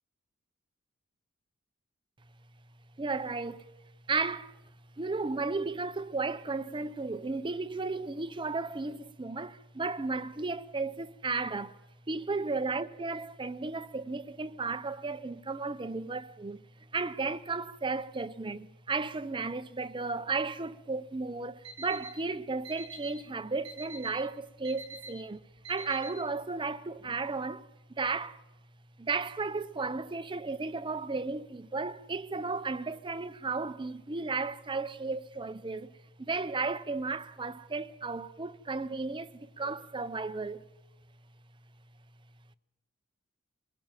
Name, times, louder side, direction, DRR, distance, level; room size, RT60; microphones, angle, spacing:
voice 1, 3.0-3.6 4.1-4.6 5.0-11.8 12.1-16.6 16.9-28.4 29.0-35.9 36.2-40.7, right 3 dB, 25° right, 0.6 m, -34 dB
Alarm, 21.6-22.1 22.6-23.1 23.6-24.1 24.6-25.1 25.6-26.1, right 3 dB, 60° right, 3.4 m, -44 dB
22.0 x 16.5 x 7.5 m
head